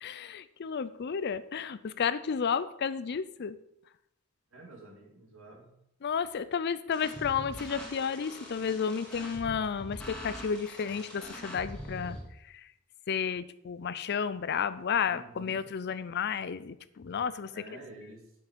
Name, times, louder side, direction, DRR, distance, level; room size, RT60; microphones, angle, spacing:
voice 1, 0.0-3.6 6.0-12.2 12.5-12.7 13.1-17.5, left 6 dB, 55° left, 15 dB, 0.5 m, -32 dB
voice 2, 4.5-5.7 15.1-15.6 17.5-18.4, right 2 dB, 70° right, 1 dB, 2.4 m, -49 dB
sound 1, 6.9-12.2, equal, 5° left, 2.0 m, -43 dB
7.9 x 7.4 x 5.2 m, 0.78 s
head